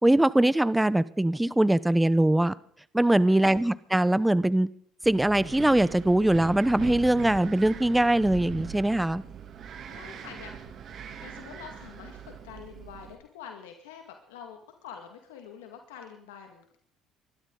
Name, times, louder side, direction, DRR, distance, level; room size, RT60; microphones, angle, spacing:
voice 1, 0.0-2.5 2.9-4.7 5.0-9.2, right 1 dB, 10° right, 17 dB, 0.9 m, -22 dB
voice 2, 3.2-3.7 9.9-16.8, left 7 dB, 90° left, 4 dB, 2.0 m, -46 dB
Wind, 5.0-13.1, right 7 dB, 55° right, 2.8 m, -41 dB
24.0 x 12.5 x 4.0 m, 0.62 s
hypercardioid pair, 70°, 0 cm